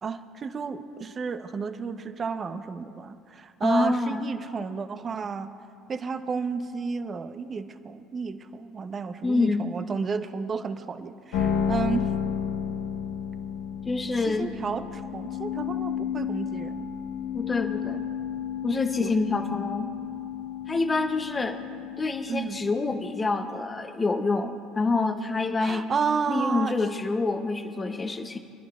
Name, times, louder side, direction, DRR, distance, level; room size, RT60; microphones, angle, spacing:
voice 1, 0.0-5.5 5.9-12.1 14.3-16.9 19.0-19.4 22.3-22.6 25.6-26.7, right 5 dB, 35° right, 10 dB, 0.7 m, -32 dB
voice 2, 3.6-4.3 9.2-9.7 13.9-14.5 17.3-18.0 18.6-19.9 20.7-21.6 22.0-25.9 26.3-28.4, left 3 dB, 25° left, 6 dB, 0.7 m, -27 dB
sound 1, 11.3-23.6, left 8 dB, 85° left, 1.3 m, -32 dB
29.0 x 11.0 x 2.4 m, 2.4 s
supercardioid pair, 85°, 0 cm